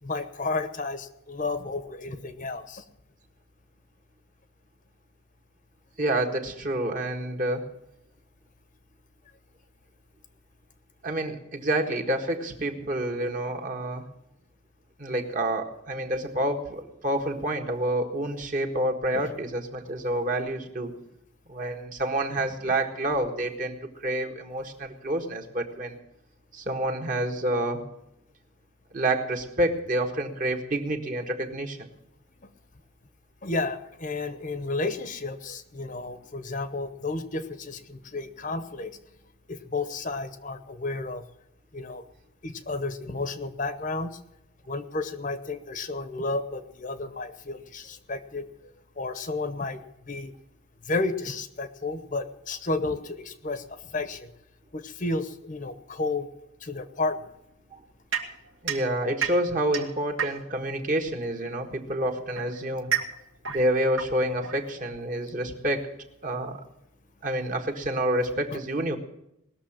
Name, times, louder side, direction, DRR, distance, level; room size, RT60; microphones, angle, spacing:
voice 1, 0.0-2.8 19.1-19.3 32.4-32.5 33.4-38.9 39.5-41.2 41.7-42.0 42.4-44.2 44.7-50.3 50.8-54.3 54.7-56.3 56.6-57.3 68.5-68.6, left 3 dB, 40° left, 10 dB, 0.9 m, -32 dB
voice 2, 6.0-7.6 11.0-14.0 15.0-20.9 21.5-23.8 24.0-26.0 26.5-27.9 28.9-31.9 57.7-57.8 58.6-62.9 63.5-65.9 66.2-66.6 67.2-69.0, right 1 dB, 40° right, 3 dB, 1.6 m, -28 dB
sound 1, 58.1-60.7 61.7-65.1, right 8 dB, 75° right, 1.9 m, -33 dB
19.5 x 6.9 x 8.8 m, 0.83 s
head